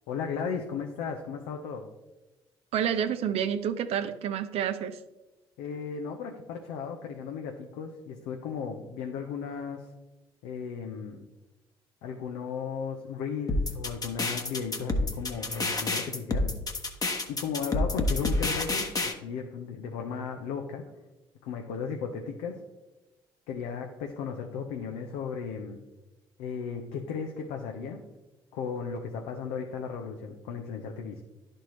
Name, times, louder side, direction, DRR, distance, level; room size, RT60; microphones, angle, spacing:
voice 1, 0.1-1.9 5.6-9.9 10.4-11.2 12.0-16.5 17.3-20.8 21.4-22.6 23.5-25.8 26.4-28.0 28.5-31.2, left 6 dB, 70° left, 3 dB, 0.7 m, -35 dB
voice 2, 2.7-5.0, right 9 dB, 60° right, 10 dB, 0.5 m, -29 dB
sound 1, 13.5-19.1, left 2 dB, 30° left, 1.1 m, -28 dB
11.5 x 4.4 x 3.1 m, 1.1 s
hypercardioid pair, 50°, 12 cm